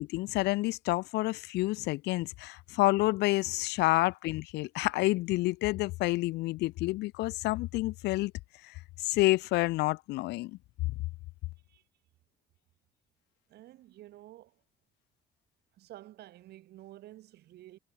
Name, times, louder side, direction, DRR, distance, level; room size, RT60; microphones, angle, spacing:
voice 1, 0.0-8.3 8.6-8.7 9.0-10.6, left 20 dB, 85° left, 1.2 m, -29 dB
voice 2, 13.5-14.6 15.8-17.8, right 15 dB, 75° right, 6.2 m, -51 dB
cardioid pair, 110°, 17 cm